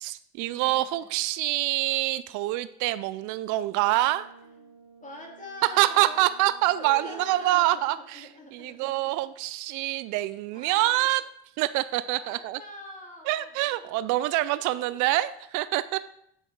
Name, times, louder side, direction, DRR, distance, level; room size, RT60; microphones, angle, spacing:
voice 1, 0.0-4.3 5.6-11.3 11.6-12.6 13.3-16.0, right 16 dB, 70° right, 15 dB, 0.5 m, -26 dB
voice 2, 0.6-1.2 4.4-4.7 5.0-6.3 6.7-9.1 10.5-11.1 12.1-14.1 14.5-15.0, left 2 dB, 25° left, 0 dB, 3.3 m, -45 dB
Brass instrument, 3.4-7.7, right 5 dB, 85° right, 0.9 m, -54 dB
9.1 x 6.2 x 4.6 m, 0.73 s
hypercardioid pair, 65°, 32 cm